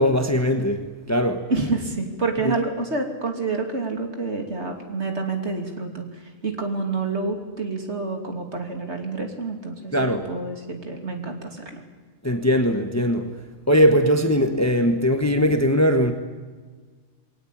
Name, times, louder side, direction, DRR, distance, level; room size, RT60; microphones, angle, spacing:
voice 1, 0.0-1.5 2.4-2.5 9.9-10.3 12.2-13.3 13.7-16.1, equal, 15° left, 1.2 m, -20 dB
voice 2, 1.5-11.8, right 3 dB, 70° right, 3.2 m, -28 dB
22.5 x 18.5 x 8.7 m
omnidirectional pair, 1.2 m